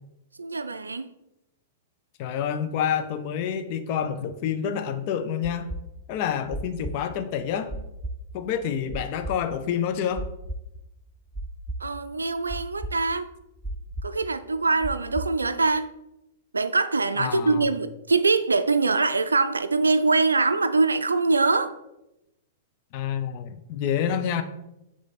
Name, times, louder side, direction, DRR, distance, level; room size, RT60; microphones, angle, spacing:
voice 1, 0.4-1.1 11.8-13.3 14.0-15.9 16.5-21.7, right 3 dB, 85° right, 0.3 m, -23 dB
voice 2, 2.2-5.7 6.1-7.7 8.3-10.2 17.2-17.7 22.9-24.4, left 8 dB, 45° left, 0.6 m, -28 dB
sound 1, 5.4-15.8, right 1 dB, 5° right, 0.5 m, -35 dB
6.5 x 3.8 x 4.0 m
figure-of-eight pair, 105°, 0 cm